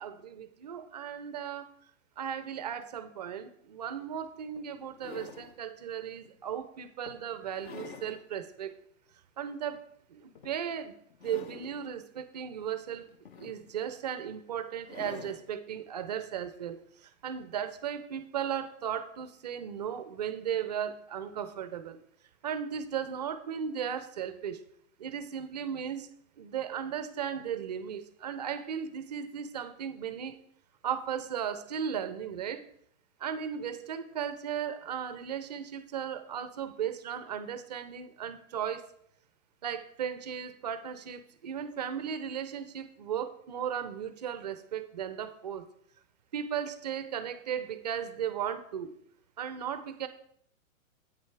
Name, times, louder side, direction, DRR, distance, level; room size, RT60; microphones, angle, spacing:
voice 1, 0.0-1.7 2.2-8.7 9.4-9.8 10.1-11.0 11.2-13.1 13.4-22.0 22.4-24.6 25.0-26.1 26.4-30.4 30.8-32.6 33.2-38.9 39.6-45.6 46.3-48.9 49.4-50.1, right 8 dB, 30° right, 11 dB, 0.4 m, -36 dB
sound 1, 3.8-3.9 4.6-5.6 6.2-6.4 7.1-8.2 8.7-8.8 10.3-10.7 11.1-11.9 13.0-13.9 14.8-15.5 16.8-16.9, left 6 dB, 45° left, 0.8 m, -47 dB
8.3 x 6.4 x 4.5 m, 0.68 s
hypercardioid pair, 150°, 42 cm